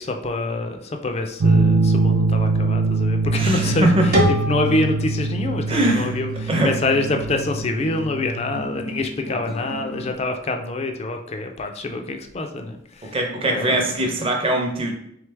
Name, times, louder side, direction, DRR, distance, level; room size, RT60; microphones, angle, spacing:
voice 1, 0.0-13.2 13.4-14.0, left 2 dB, 30° left, 5 dB, 0.4 m, -26 dB
sound 1, 1.4-8.6, right 3 dB, 80° right, 0.5 m, -23 dB
sound 2, 3.2-10.1, left 1 dB, 90° left, 1.0 m, -36 dB
voice 2, 3.4-4.2 5.7-6.2 6.5-6.7 13.0-14.9, right 1 dB, 30° right, 2 dB, 0.6 m, -21 dB
sound 3, 4.1-7.0, equal, 50° right, 0.9 m, -27 dB
3.8 x 3.2 x 3.3 m, 0.73 s
head